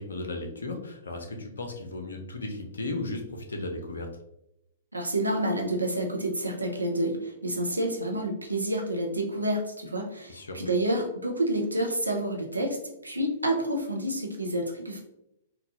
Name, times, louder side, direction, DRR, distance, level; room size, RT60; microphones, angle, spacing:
voice 1, 0.0-4.1 10.3-10.6, left 2 dB, 70° left, 3 dB, 0.6 m, -35 dB
voice 2, 4.9-12.8 13.0-15.0, right 1 dB, 85° right, 2 dB, 0.7 m, -29 dB
3.8 x 2.3 x 2.7 m, 0.81 s
figure-of-eight pair, 110°, 0 cm